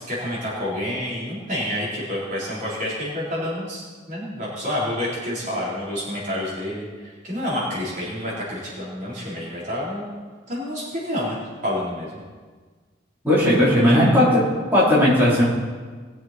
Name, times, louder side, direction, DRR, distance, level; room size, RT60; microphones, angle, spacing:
voice 1, 0.0-10.1 10.5-12.1 13.8-14.1, left 1 dB, 40° right, -7 dB, 3.8 m, -29 dB
voice 2, 13.2-14.3 14.7-15.4, left 1 dB, 10° right, -9 dB, 3.9 m, -16 dB
20.0 x 7.7 x 4.4 m, 1.4 s
head